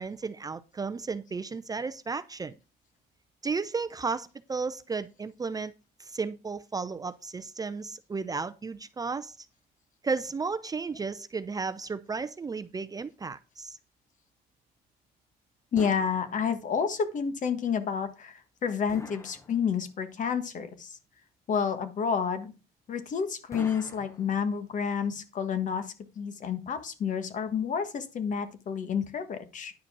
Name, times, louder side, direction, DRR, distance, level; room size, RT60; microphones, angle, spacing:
voice 1, 0.0-2.6 3.4-5.7 6.0-9.5 10.0-13.8, right 4 dB, 20° right, 0.5 m, -34 dB
voice 2, 15.7-21.0 21.5-22.5 22.9-29.7, left 6 dB, 50° left, 1.5 m, -30 dB
sound 1, 15.8-16.9 18.9-20.1 23.5-24.8, left 2 dB, 15° left, 1.0 m, -46 dB
10.5 x 4.8 x 6.1 m
cardioid pair, 110°, 17 cm